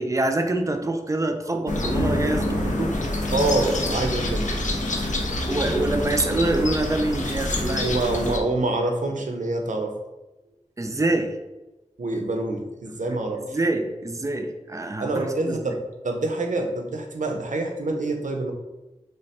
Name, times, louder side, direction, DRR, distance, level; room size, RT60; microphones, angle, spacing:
voice 1, 0.0-3.0 5.5-8.0 10.8-11.4 13.5-15.6, right 2 dB, 25° right, 6 dB, 0.4 m, -25 dB
sound 1, 1.7-8.4, left 1 dB, 75° left, 0.5 m, -26 dB
voice 2, 3.3-4.7 7.8-9.9 12.0-13.6 15.0-15.8 16.0-18.5, right 2 dB, 85° right, 3 dB, 0.5 m, -26 dB
3.1 x 2.1 x 4.1 m, 1.0 s
wide cardioid pair, 55°, 13 cm